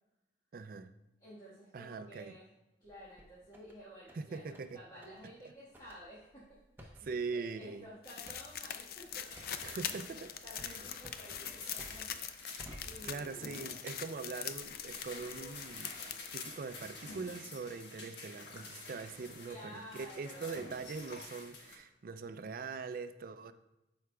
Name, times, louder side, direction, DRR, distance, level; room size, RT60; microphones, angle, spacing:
voice 1, 0.5-0.9 1.7-2.4 4.1-4.8 7.0-7.9 9.6-10.3 10.6-10.9 13.0-23.5, right 4 dB, 55° right, 0.4 m, -42 dB
voice 2, 1.2-2.5 2.8-9.5 10.4-13.5 19.4-20.6, equal, 25° left, 1.4 m, -53 dB
sound 1, 2.8-3.8 4.1-4.7 5.0-5.2 5.7-12.2 12.6-13.4 13.9-14.8 15.3-15.7, equal, 10° right, 0.8 m, -55 dB
sound 2, 8.0-16.4, left 9 dB, 60° left, 0.4 m, -43 dB
sound 3, 9.2-21.8, left 3 dB, 90° left, 1.3 m, -50 dB
12.5 x 4.7 x 2.2 m
head